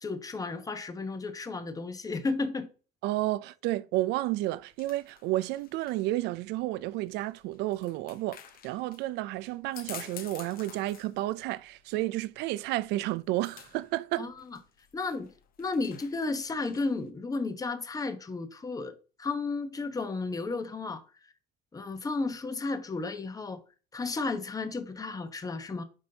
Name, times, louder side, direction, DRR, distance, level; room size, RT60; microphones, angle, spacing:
voice 1, 0.0-2.7 14.2-14.6 14.9-15.3 15.6-21.0 21.7-23.6 23.9-25.8, left 3 dB, 20° left, 1.0 m, -33 dB
voice 2, 3.0-14.3, right 16 dB, 90° right, 0.4 m, -31 dB
sound 1, 4.1-17.1, left 9 dB, 60° left, 1.1 m, -51 dB
9.0 x 5.3 x 2.8 m
cardioid pair, 110°, 17 cm